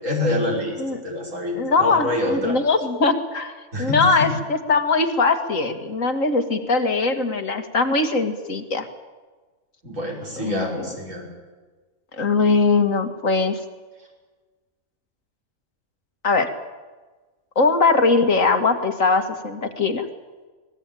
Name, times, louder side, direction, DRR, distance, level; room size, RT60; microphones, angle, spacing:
voice 1, 0.0-2.6 3.7-4.3 9.8-11.3, left 1 dB, 65° right, -1 dB, 6.2 m, -26 dB
voice 2, 1.6-8.9 10.4-10.9 12.2-13.6 16.2-16.5 17.6-20.1, left 3 dB, 65° left, 8 dB, 2.3 m, -21 dB
24.5 x 19.0 x 9.2 m, 1.3 s
omnidirectional pair, 1.4 m